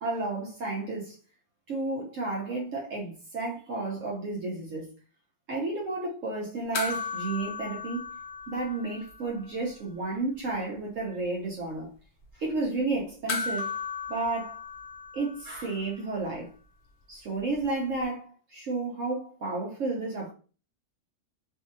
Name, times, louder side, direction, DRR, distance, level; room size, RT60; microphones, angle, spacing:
voice 1, 0.0-1.2 1.7-4.9 5.5-8.0 8.5-11.9 12.4-13.7 14.1-14.6 15.1-16.5 17.1-20.3, right 3 dB, 65° right, 0.9 m, -32 dB
sound 1, 6.7-9.4 9.7-9.8 13.3-15.9 18.0-18.1, left 5 dB, 80° left, 0.5 m, -36 dB
2.6 x 2.6 x 2.5 m
omnidirectional pair, 1.7 m